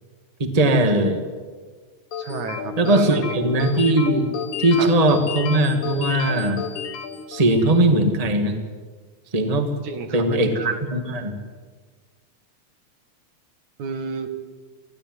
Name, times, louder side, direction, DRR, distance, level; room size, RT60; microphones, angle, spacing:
voice 1, 0.4-1.2 2.8-4.3 4.6-6.7 7.3-8.6 9.3-9.7 10.1-11.3, right 1 dB, 15° right, 5 dB, 1.6 m, -19 dB
sound 1, 2.1-7.9, left 7 dB, 85° left, 3.3 m, -31 dB
voice 2, 2.2-3.8 4.8-4.9 9.8-10.8 13.8-14.3, right 4 dB, 80° right, 7 dB, 3.4 m, -31 dB
24.5 x 16.0 x 9.3 m, 1.5 s
omnidirectional pair, 3.4 m